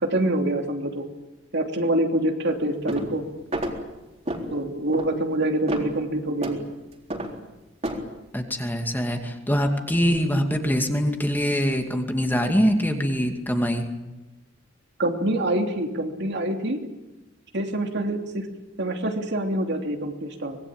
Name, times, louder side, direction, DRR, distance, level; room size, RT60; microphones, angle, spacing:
voice 1, 0.0-1.0 1.5-3.2 4.5-6.6 15.0-16.8 17.5-18.4 18.8-20.6, right 1 dB, 60° right, 3 dB, 3.0 m, -25 dB
sound 1, 2.9-3.2 3.5-3.8 4.3-4.5 4.9-5.1 5.7-5.9 6.4-6.6 7.1-7.3 7.8-8.0, right 1 dB, 35° right, 3.9 m, -29 dB
voice 2, 8.3-13.9, equal, 10° left, 4 dB, 2.5 m, -23 dB
25.0 x 20.5 x 8.9 m, 1.0 s
head